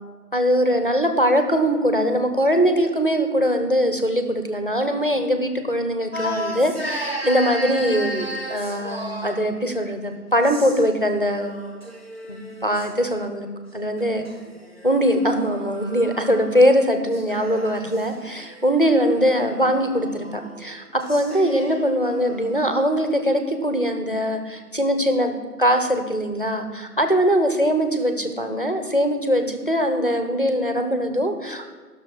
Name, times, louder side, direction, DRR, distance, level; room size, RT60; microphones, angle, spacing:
voice 1, 0.3-11.5 12.3-13.5 13.7-14.3 14.8-31.8, equal, 35° left, 6 dB, 0.8 m, -21 dB
sound 1, 6.1-9.5 10.3-11.0 11.3-12.9 14.0-16.7 17.1-22.7, equal, 40° right, 1.1 m, -35 dB
15.0 x 6.4 x 6.0 m, 1.5 s
figure-of-eight pair, 175°, 48 cm